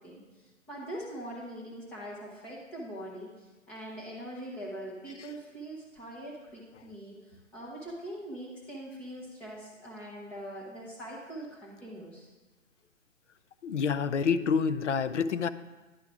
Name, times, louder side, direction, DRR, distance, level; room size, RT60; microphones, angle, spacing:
voice 1, 0.0-12.3, right 1 dB, 5° left, -4 dB, 0.5 m, -42 dB
voice 2, 13.6-15.5, left 6 dB, 65° left, 13 dB, 0.6 m, -27 dB
10.5 x 4.7 x 6.0 m, 1.2 s
figure-of-eight pair, 135°, 39 cm